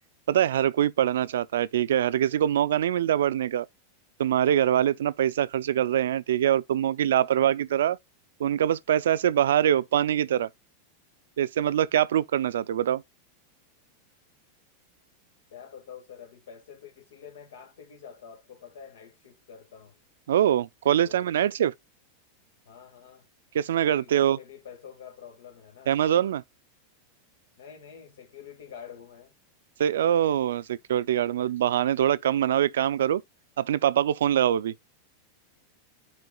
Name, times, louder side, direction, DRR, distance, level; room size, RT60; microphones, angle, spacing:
voice 1, 0.3-3.7 4.2-8.0 8.4-10.5 11.4-13.0 20.3-21.7 23.5-24.4 25.9-26.4 29.8-33.2 33.6-34.7, right 10 dB, 90° right, 0.4 m, -24 dB
voice 2, 15.5-20.0 21.0-21.3 22.7-23.3 24.0-26.0 27.6-29.4, left 7 dB, 80° left, 1.8 m, -47 dB
11.0 x 4.5 x 2.3 m
supercardioid pair, 145°, 0 cm